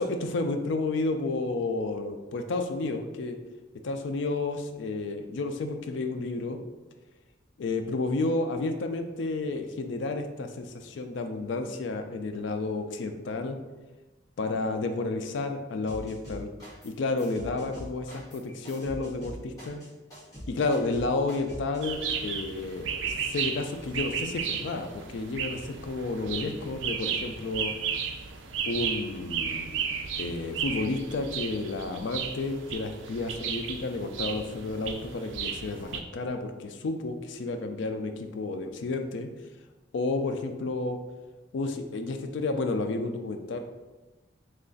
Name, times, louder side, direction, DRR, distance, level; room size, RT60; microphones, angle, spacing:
voice 1, 0.0-3.4 3.8-6.6 7.6-13.6 14.4-16.5 16.8-19.8 20.5-27.7 28.7-29.9 30.2-39.3 39.9-41.0 41.5-43.6, left 3 dB, 75° left, 6 dB, 0.4 m, -31 dB
sound 1, 15.9-16.9 17.2-21.9, equal, 20° left, 1.4 m, -43 dB
sound 2, 21.8-36.0, right 6 dB, 80° right, 0.4 m, -34 dB
3.2 x 2.4 x 3.8 m, 1.2 s
head